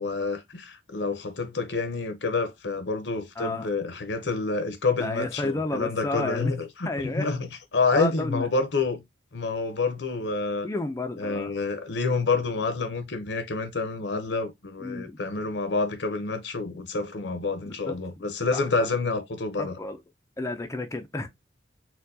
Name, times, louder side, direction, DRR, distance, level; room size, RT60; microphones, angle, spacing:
voice 1, 0.0-7.5 7.7-9.0 9.3-10.7 11.2-19.7, left 3 dB, 70° left, 0.8 m, -28 dB
voice 2, 3.4-3.7 5.0-6.6 6.8-7.3 7.9-8.5 10.6-11.5 14.8-15.2 17.6-18.0 18.5-18.6 19.6-20.0 20.4-21.3, left 2 dB, 15° left, 0.4 m, -31 dB
4.4 x 2.2 x 2.6 m
head